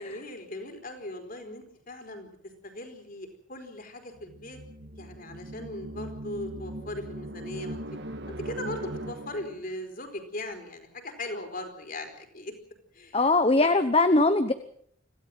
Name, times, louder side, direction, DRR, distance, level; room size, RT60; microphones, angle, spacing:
voice 1, 0.0-2.3 2.6-4.6 5.0-7.8 8.3-12.5 12.9-13.3 13.6-13.7, left 1 dB, 45° left, 5 dB, 4.5 m, -39 dB
sound 1, 4.2-9.7, right 1 dB, 55° right, 1.9 m, -39 dB
voice 2, 13.1-14.5, left 2 dB, 30° left, 10 dB, 1.0 m, -21 dB
26.0 x 16.5 x 7.8 m, 0.67 s
head